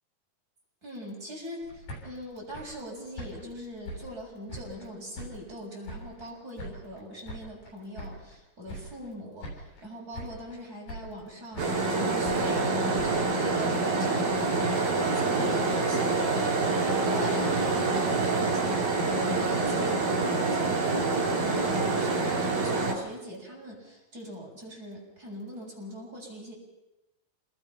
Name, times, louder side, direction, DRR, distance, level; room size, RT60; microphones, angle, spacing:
voice 1, 0.8-26.5, equal, 25° right, -2 dB, 7.1 m, -42 dB
sound 1, 1.6-4.9 5.1-6.3 6.6-8.4 8.7-9.2 9.4-9.9 10.1-10.6 10.9-11.9 12.3-14.4, equal, 85° left, 9.6 m, -43 dB
sound 2, 11.6-22.9, right 3 dB, 85° right, 6.2 m, -26 dB
28.0 x 21.5 x 5.9 m, 0.96 s
omnidirectional pair, 4.0 m